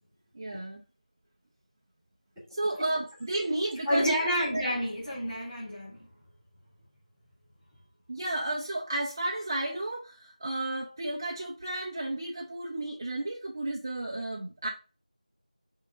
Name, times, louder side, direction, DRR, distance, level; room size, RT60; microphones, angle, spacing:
voice 1, 0.3-0.8 2.5-4.2 4.5-4.6 8.1-14.7, right 1 dB, 25° right, 0.7 m, -32 dB
voice 2, 3.8-6.1, equal, ahead, 3.3 m, -29 dB
7.7 x 3.8 x 3.8 m
figure-of-eight pair, 175°, 4 cm